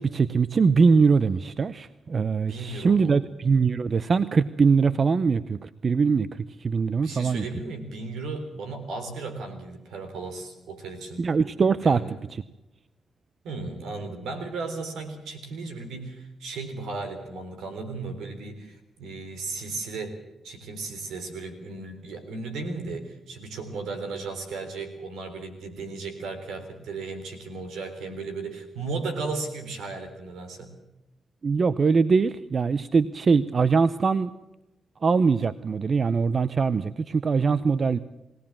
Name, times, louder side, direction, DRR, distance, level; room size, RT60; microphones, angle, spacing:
voice 1, 0.0-7.4 11.2-12.4 31.4-34.3 35.0-38.0, right 5 dB, 50° right, 15 dB, 0.7 m, -22 dB
voice 2, 2.5-3.2 7.0-11.2 11.8-12.2 13.4-30.7, right 3 dB, 85° right, 7 dB, 3.6 m, -35 dB
21.5 x 17.5 x 7.4 m, 0.94 s
cardioid pair, 65°, 0 cm